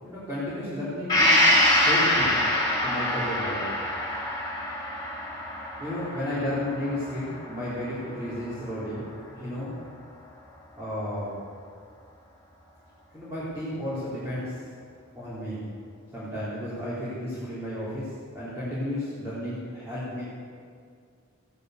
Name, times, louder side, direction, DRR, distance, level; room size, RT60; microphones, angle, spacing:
voice 1, 0.0-2.5 2.8-3.6 5.8-9.1 9.3-9.7 10.8-11.4 13.1-14.6 15.1-15.7 16.1-20.2, left 1 dB, 10° right, -12 dB, 4.0 m, -33 dB
Gong, 1.1-8.7 9.1-9.2, left 1 dB, 20° left, 4.2 m, -25 dB
15.5 x 11.5 x 6.8 m, 2.2 s
head